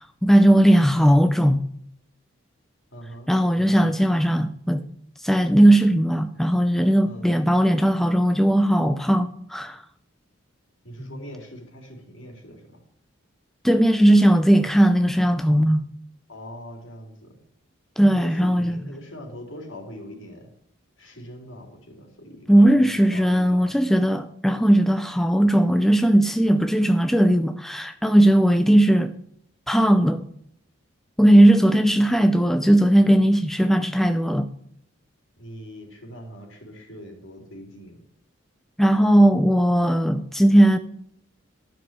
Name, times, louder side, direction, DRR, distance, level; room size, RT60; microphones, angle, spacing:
voice 1, 0.0-1.6 3.3-4.8 5.2-9.8 11.0-11.1 13.6-15.8 18.0-18.8 22.5-29.1 29.7-30.2 31.2-34.5 38.8-40.8, right 1 dB, ahead, 0.4 m, -18 dB
voice 2, 2.9-4.0 7.0-7.3 10.8-12.8 16.3-17.4 18.1-20.5 21.0-23.8 35.4-38.0, equal, 70° left, 3.5 m, -42 dB
12.5 x 6.2 x 7.5 m
head